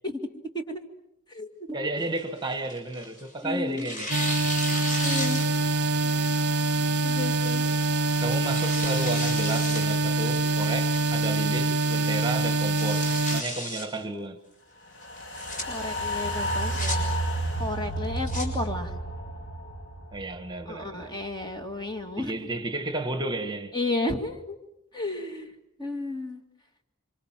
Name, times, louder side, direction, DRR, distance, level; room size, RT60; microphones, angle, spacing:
voice 1, 1.7-4.1 8.2-14.4 20.1-21.1 22.2-23.7, right 2 dB, 20° right, 1.9 m, -32 dB
Tearing, 2.0-3.3 3.8-5.8 6.2-6.3 7.2-7.5 8.1-9.9 10.3-10.4 10.9-11.3 11.7-11.8 12.1-12.2 12.6-13.9 15.2-15.6 16.4-17.0 18.0-18.5, left 1 dB, 35° left, 6.7 m, -34 dB
voice 2, 3.4-3.9 5.0-5.6 7.0-7.6 15.7-17.1 17.5-19.0 20.7-22.3 23.7-24.6 24.9-25.5 25.8-26.4, left 2 dB, 20° left, 2.3 m, -32 dB
sound 1, 4.1-13.4, right 2 dB, 50° right, 1.0 m, -25 dB
sound 2, 15.0-21.4 21.7-21.8, right 1 dB, 55° left, 4.9 m, -31 dB
29.0 x 25.5 x 7.6 m
head